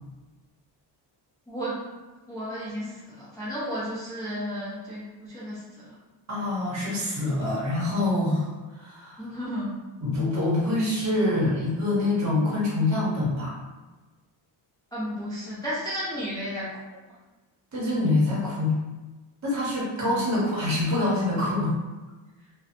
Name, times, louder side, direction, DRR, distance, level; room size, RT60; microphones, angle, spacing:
voice 1, 1.5-1.8 2.3-2.9 3.2-5.6 5.9-6.0 9.2-9.8 14.9-16.7 20.0-20.5, equal, 10° left, -11 dB, 0.5 m, -33 dB
voice 2, 6.3-8.5 8.8-9.2 10.0-13.5 17.7-18.8 19.4-21.7, left 2 dB, 35° right, -6 dB, 0.9 m, -25 dB
2.6 x 2.2 x 2.5 m, 1.2 s
cardioid pair, 155°, 47 cm